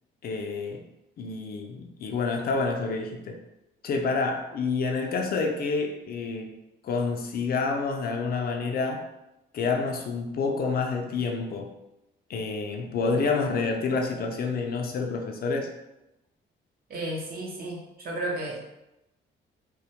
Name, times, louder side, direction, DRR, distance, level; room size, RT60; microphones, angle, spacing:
voice 1, 0.2-0.8 1.2-3.4 3.8-6.5 6.8-9.0 9.5-11.7 12.3-15.7, left 4 dB, 50° left, 2 dB, 0.4 m, -28 dB
voice 2, 16.9-18.6, right 1 dB, 50° right, -2 dB, 0.7 m, -33 dB
2.1 x 2.1 x 2.8 m, 0.93 s
cardioid pair, 90°, 20 cm